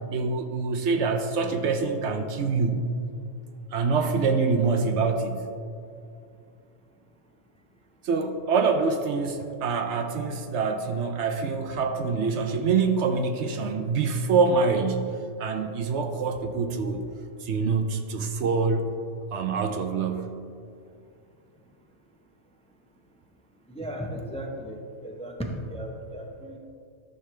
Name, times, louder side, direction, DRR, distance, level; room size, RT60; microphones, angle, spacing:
voice 1, 0.1-2.9 3.7-5.5 8.0-17.0 17.4-18.9 19.3-20.4, right 4 dB, 65° right, 6 dB, 0.9 m, -25 dB
voice 2, 23.7-26.6, equal, 5° left, 1 dB, 0.6 m, -35 dB
13.5 x 6.7 x 3.3 m, 2.4 s
omnidirectional pair, 1.3 m